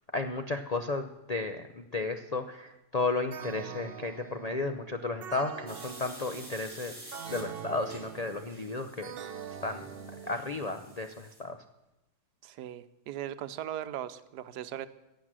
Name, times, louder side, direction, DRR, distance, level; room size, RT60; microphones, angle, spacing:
voice 1, 0.1-6.9 7.3-9.1 9.6-9.8 10.3-11.6, left 3 dB, 65° left, 6 dB, 0.3 m, -33 dB
sound 1, 3.3-11.0, right 8 dB, 55° right, 0.7 m, -44 dB
sound 2, 5.7-11.4, right 1 dB, 15° right, 3.3 m, -50 dB
voice 2, 12.4-14.9, right 11 dB, 85° right, 13 dB, 1.3 m, -38 dB
16.0 x 9.0 x 7.5 m, 0.97 s
omnidirectional pair, 1.7 m